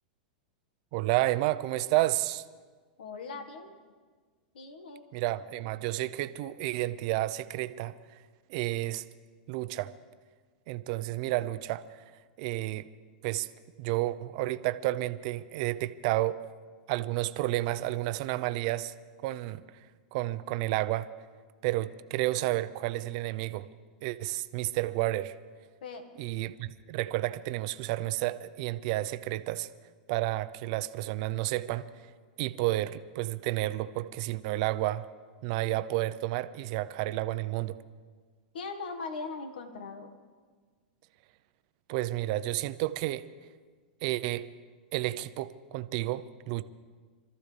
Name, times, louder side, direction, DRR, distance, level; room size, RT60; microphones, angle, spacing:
voice 1, 0.9-2.4 5.1-7.9 8.5-9.0 9.5-9.9 10.7-11.8 12.4-12.9 13.2-13.5 13.8-16.4 16.9-18.9 19.2-19.6 20.1-21.1 21.6-23.7 24.0-25.3 26.2-29.7 30.1-31.9 32.4-35.1 35.4-37.8 41.9-43.3 44.0-44.5 44.9-46.6, right 17 dB, 55° right, 13 dB, 0.7 m, -31 dB
voice 2, 3.0-3.7 4.5-5.0 25.8-26.0 38.5-40.1, left 4 dB, 85° left, 7 dB, 1.7 m, -40 dB
25.5 x 14.0 x 3.4 m, 1.5 s
hypercardioid pair, 125°, 5 cm